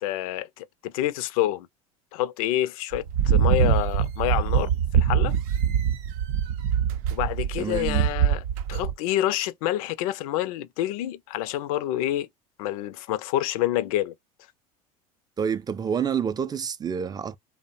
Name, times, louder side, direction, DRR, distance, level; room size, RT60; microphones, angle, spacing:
voice 1, 0.0-1.7 2.1-5.3 7.1-8.4 8.7-12.3 12.6-14.1, left 14 dB, 75° left, 0.4 m, -27 dB
sound 1, 2.9-8.9, right 8 dB, 70° right, 0.5 m, -23 dB
voice 2, 7.6-8.1 15.4-17.4, right 7 dB, 20° right, 0.4 m, -28 dB
2.7 x 2.1 x 2.5 m
hypercardioid pair, 85°, 18 cm